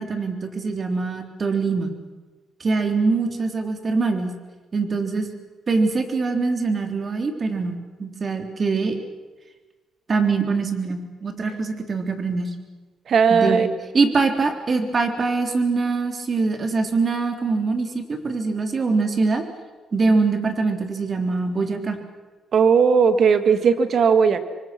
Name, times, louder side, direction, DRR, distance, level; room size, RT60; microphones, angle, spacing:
voice 1, 0.0-1.9 2.6-4.3 4.7-5.3 5.7-9.0 10.1-12.5 13.3-13.6 13.9-19.4 19.9-22.0, right 4 dB, 40° right, 5 dB, 3.5 m, -23 dB
voice 2, 13.1-13.7 22.5-24.4, right 6 dB, 55° right, 10 dB, 1.9 m, -17 dB
27.5 x 24.0 x 6.0 m, 1.3 s
cardioid pair, 90°, 0 cm